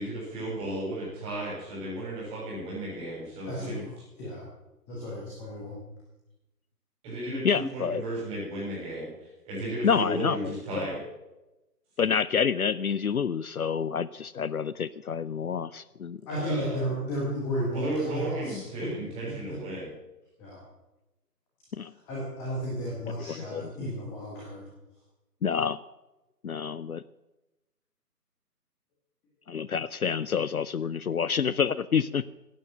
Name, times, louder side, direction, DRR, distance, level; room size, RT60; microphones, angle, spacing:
voice 1, 0.0-3.8 7.0-11.0 16.3-16.8 17.7-19.9, right 1 dB, 10° right, -7 dB, 7.0 m, -34 dB
voice 2, 3.4-3.9 4.2-4.5 4.9-5.8 16.3-18.9 20.4-20.6 22.0-24.7, equal, 5° left, -5 dB, 1.2 m, -33 dB
voice 3, 7.4-8.0 9.8-10.9 12.0-16.2 21.7-21.9 23.1-23.9 25.4-25.8 26.4-27.0 29.5-32.3, left 6 dB, 65° left, 18 dB, 0.6 m, -28 dB
15.5 x 9.4 x 7.8 m, 0.99 s
figure-of-eight pair, 150°, 48 cm